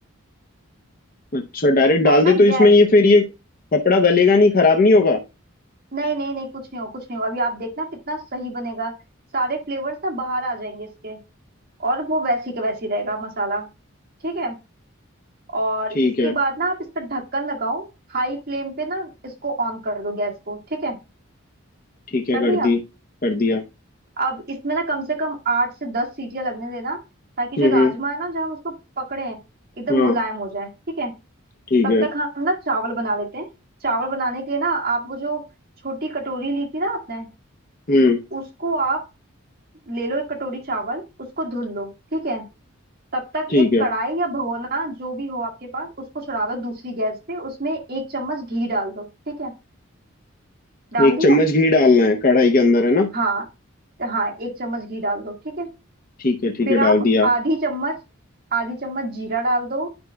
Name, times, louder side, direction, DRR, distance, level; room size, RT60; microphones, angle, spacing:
voice 1, 1.3-3.3 3.7-5.2 15.9-16.3 22.1-22.8 23.2-23.6 27.6-27.9 29.9-30.2 31.7-32.1 37.9-38.2 43.5-43.9 51.0-53.1 56.2-57.3, left 2 dB, 45° left, 2 dB, 0.7 m, -16 dB
voice 2, 2.0-2.7 5.9-8.9 9.3-11.2 11.8-13.7 14.2-14.5 15.5-21.0 22.3-22.7 24.2-27.0 27.4-29.4 29.8-30.7 31.0-31.1 31.8-33.5 33.8-35.4 35.8-37.3 38.3-39.0 39.9-41.0 41.4-42.5 43.1-49.5 50.9-51.4 53.1-53.4 54.0-55.7 56.6-57.9 58.5-59.9, right 2 dB, 50° right, 0 dB, 1.7 m, -26 dB
9.6 x 5.4 x 2.3 m, 0.27 s
head